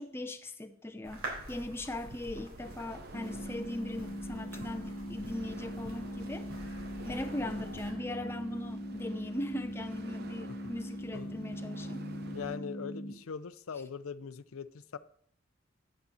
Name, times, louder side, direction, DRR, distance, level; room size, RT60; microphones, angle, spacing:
voice 1, 0.0-6.5 7.0-12.0, left 1 dB, 10° left, 7 dB, 0.6 m, -39 dB
sound 1, 1.0-7.9, right 1 dB, 85° right, 3.6 m, -46 dB
sound 2, 1.8-12.6, right 2 dB, 50° right, 0.8 m, -50 dB
sound 3, 3.1-13.1, equal, 30° left, 1.1 m, -41 dB
voice 2, 12.1-15.0, left 6 dB, 85° left, 15 dB, 0.5 m, -41 dB
9.2 x 8.5 x 4.2 m, 0.62 s
head